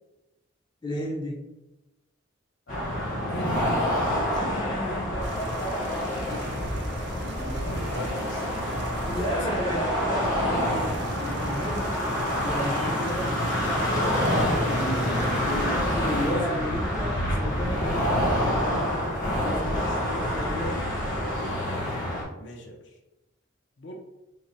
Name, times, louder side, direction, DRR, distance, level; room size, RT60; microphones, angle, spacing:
voice 1, 0.8-1.5 4.3-6.6 8.3-12.0 12.4-13.5 13.8-18.4 19.4-20.8, equal, 20° left, -2 dB, 0.5 m, -33 dB
voice 2, 2.7-3.7 7.2-9.6 16.1-16.6 16.9-18.1 19.1-19.7 22.4-22.9 23.8-24.0, left 1 dB, 65° left, 2 dB, 0.6 m, -40 dB
sound 1, 2.7-22.2, equal, 40° left, 0.9 m, -27 dB
sound 2, 5.2-15.7, right 3 dB, 55° right, 0.5 m, -40 dB
sound 3, 13.2-16.2, left 1 dB, 85° left, 1.1 m, -34 dB
3.7 x 2.1 x 4.0 m, 0.98 s
head